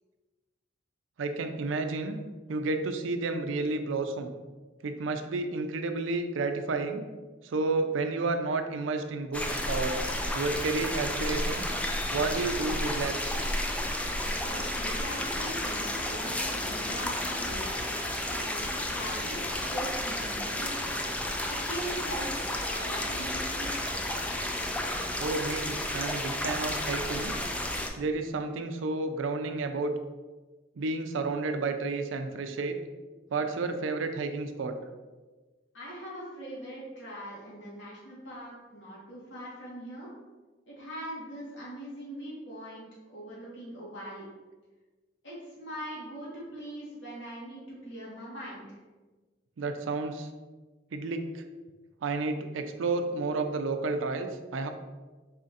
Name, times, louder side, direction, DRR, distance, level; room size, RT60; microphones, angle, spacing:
voice 1, 1.2-2.2 2.5-4.3 4.8-7.0 7.4-10.0 10.3-11.7 12.1-13.2 25.2-27.3 28.0-29.9 30.8-32.8 33.3-34.7 49.6-50.3 50.9-51.4 52.0-54.7, right 3 dB, 85° right, 6 dB, 0.4 m, -31 dB
sound 1, 9.3-27.9, left 1 dB, 5° left, 0.3 m, -32 dB
voice 2, 14.3-20.9 21.5-24.2 35.7-40.1 40.7-44.3 45.2-48.8, right 1 dB, 70° left, -7 dB, 1.4 m, -41 dB
4.2 x 2.5 x 4.0 m, 1.3 s
head